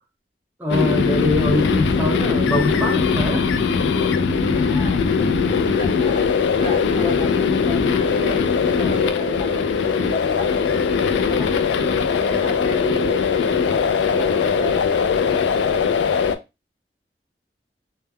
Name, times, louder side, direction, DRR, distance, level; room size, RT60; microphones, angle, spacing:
voice 1, 0.6-3.5 12.2-12.7, left 1 dB, 10° right, 0 dB, 0.4 m, -23 dB
sound 1, 0.7-16.4, left 5 dB, 90° left, 0.3 m, -20 dB
voice 2, 4.4-10.7 11.3-13.2 13.7-15.3, left 1 dB, 35° left, 0 dB, 0.8 m, -33 dB
2.2 x 2.1 x 3.4 m, 0.25 s
head